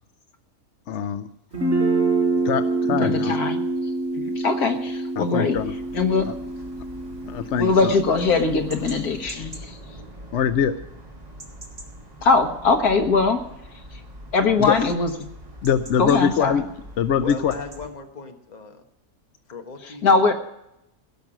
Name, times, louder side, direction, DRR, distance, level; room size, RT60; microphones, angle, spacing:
voice 1, 0.9-1.3 2.4-3.4 5.2-5.7 7.3-7.9 10.3-10.7 14.6-14.8 15.6-16.6 17.0-17.5, left 8 dB, 60° left, 11 dB, 0.8 m, -23 dB
Guitar, 1.5-9.2, right 3 dB, 50° right, 5.7 m, -26 dB
voice 2, 2.9-3.6 4.4-5.6 5.9-6.3 7.6-9.8 12.2-13.4 14.3-15.1 16.0-16.6 20.0-20.3, left 4 dB, 80° left, 6 dB, 1.8 m, -21 dB
sound 1, 5.5-17.9, right 1 dB, 25° right, 1.6 m, -42 dB
voice 3, 17.2-18.8 19.5-20.1, left 4 dB, 30° left, 4 dB, 1.3 m, -37 dB
17.0 x 6.0 x 8.7 m, 0.83 s
omnidirectional pair, 1.6 m